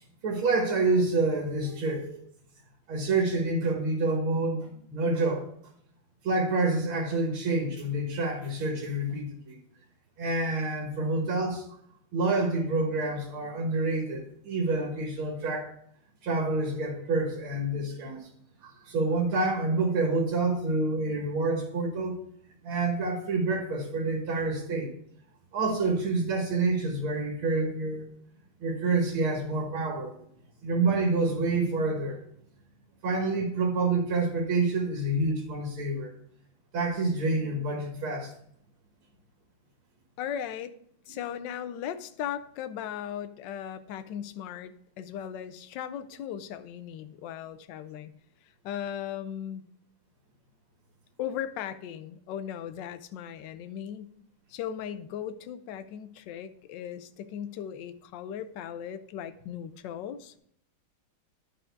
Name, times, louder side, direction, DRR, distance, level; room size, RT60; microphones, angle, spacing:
voice 1, 0.2-2.2 2.9-5.4 6.2-9.6 10.2-11.7 12.1-15.7 16.2-18.3 18.6-22.2 22.6-24.9 25.5-28.1 28.6-30.1 30.6-32.2 33.0-36.1 36.7-38.3, right 3 dB, 80° right, 1 dB, 2.2 m, -28 dB
voice 2, 40.2-40.8 41.1-48.1 48.6-49.6 51.2-54.1 54.5-60.4, left 9 dB, 70° left, 11 dB, 1.2 m, -37 dB
10.0 x 5.0 x 4.5 m, 0.69 s
omnidirectional pair, 2.3 m